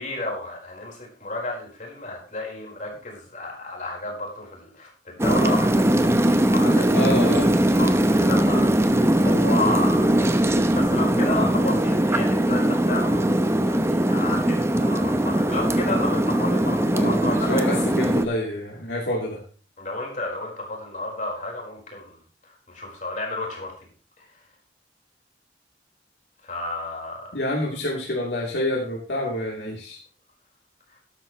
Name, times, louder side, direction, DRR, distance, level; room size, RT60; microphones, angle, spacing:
voice 1, 0.0-6.9 7.8-13.3 13.6-17.8 19.8-22.2 22.7-23.7 26.4-27.3, left 2 dB, 45° left, -1 dB, 4.6 m, -32 dB
sound 1, 5.2-18.2, right 1 dB, 15° right, 0.8 m, -20 dB
sound 2, 5.2-11.6, left 1 dB, 40° right, 7.8 m, -36 dB
voice 2, 6.9-7.6 16.9-19.4 27.3-30.0, left 1 dB, 85° left, -4 dB, 3.2 m, -27 dB
13.0 x 12.0 x 3.1 m, 0.39 s
head